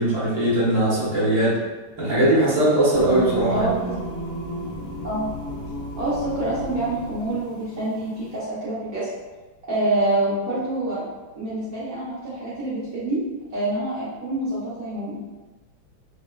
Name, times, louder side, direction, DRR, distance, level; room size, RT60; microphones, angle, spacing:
voice 1, 0.0-1.6 2.0-3.7, right 1 dB, 15° right, -9 dB, 0.8 m, -20 dB
Singing, 2.9-8.4, right 1 dB, 60° left, 1.1 m, -33 dB
voice 2, 3.5-3.9 5.0-5.3 6.0-9.1 9.7-11.0 11.3-13.2 13.5-15.2, right 2 dB, 55° right, -10 dB, 1.1 m, -26 dB
3.4 x 2.9 x 2.3 m, 1.2 s
omnidirectional pair, 2.2 m